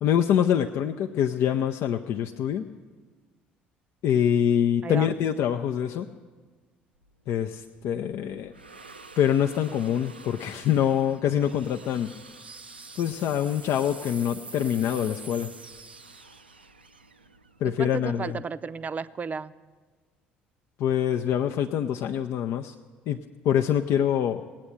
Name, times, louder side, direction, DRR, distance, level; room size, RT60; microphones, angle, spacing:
voice 1, 0.0-2.6 4.0-6.1 7.3-8.5 9.2-12.1 13.0-15.5 17.6-18.4 20.8-22.7 23.1-23.2 23.4-24.4, left 9 dB, 55° left, 4 dB, 0.5 m, -25 dB
sound 1, 7.0-18.3, right 3 dB, 90° right, 0.4 m, -47 dB
voice 2, 17.6-19.5, right 5 dB, 30° right, 13 dB, 0.5 m, -33 dB
18.0 x 8.8 x 7.7 m, 1.4 s
figure-of-eight pair, 55°, 5 cm